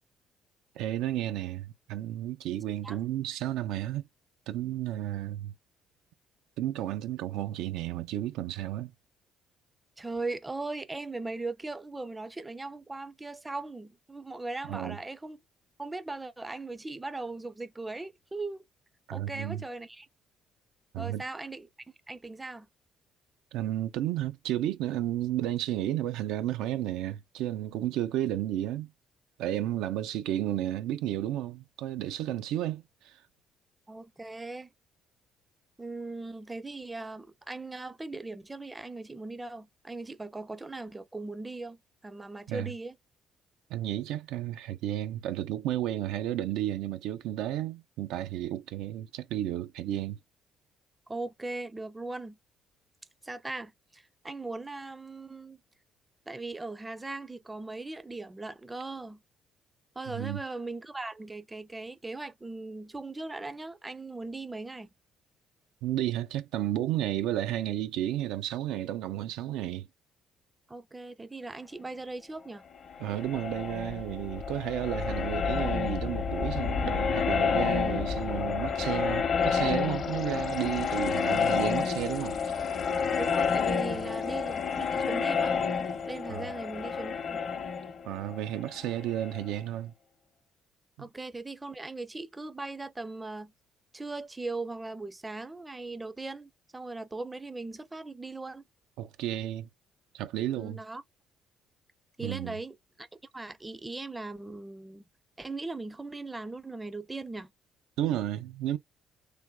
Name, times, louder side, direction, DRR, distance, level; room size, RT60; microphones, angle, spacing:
voice 1, 0.8-4.1 4.5-5.5 6.6-8.9 14.7-15.0 19.1-19.6 20.9-21.2 23.5-28.9 29.4-33.2 42.5-42.7 43.7-50.2 60.1-60.4 65.8-69.9 73.0-82.6 86.3-86.5 88.0-89.9 91.0-91.1 99.0-99.7 100.1-100.8 102.2-102.6 108.0-108.8, right 12 dB, 85° right, 0.3 m, -32 dB
voice 2, 10.0-15.4 15.8-18.6 19.1-20.1 21.0-21.7 22.1-22.7 33.9-34.7 35.8-42.9 51.1-52.4 53.2-55.6 56.3-59.2 60.0-64.9 70.7-72.7 83.2-85.5 86.1-87.4 91.0-93.5 93.9-98.6 100.6-101.0 102.2-103.1 103.3-105.0 105.4-107.5, right 3 dB, 15° right, 0.4 m, -39 dB
sound 1, 72.9-89.5, left 6 dB, 50° left, 0.7 m, -30 dB
3.3 x 2.9 x 2.2 m
cardioid pair, 105°, 0 cm